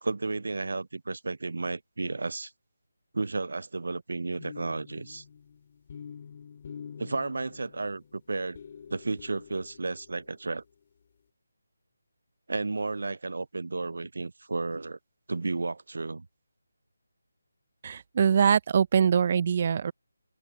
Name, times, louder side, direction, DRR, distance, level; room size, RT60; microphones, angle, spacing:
voice 1, 0.0-2.5 3.1-5.2 7.0-8.6 8.9-10.6 12.5-15.0 15.3-16.3, right 3 dB, 70° right, 0.6 m, -33 dB
sound 1, 4.4-10.5, left 7 dB, 40° left, 6.2 m, -47 dB
voice 2, 17.8-19.9, right 7 dB, 40° right, 0.8 m, -23 dB
open air
figure-of-eight pair, 160°, 0 cm